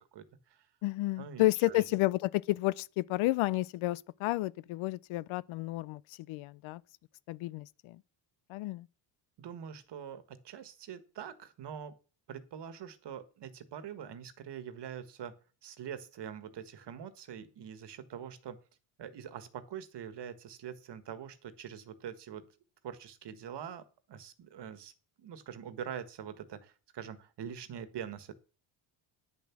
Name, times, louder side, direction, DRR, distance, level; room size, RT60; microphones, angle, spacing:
voice 1, 0.0-0.6 1.2-1.8 9.4-11.9 12.3-15.3 15.6-18.6 19.0-22.4 22.8-24.9 25.2-28.3, right 8 dB, 55° right, 1.6 m, -44 dB
voice 2, 0.8-6.0 6.3-6.8 7.3-8.0 8.5-8.9, left 18 dB, 70° left, 0.6 m, -31 dB
9.9 x 7.0 x 6.0 m
cardioid pair, 90°, 50 cm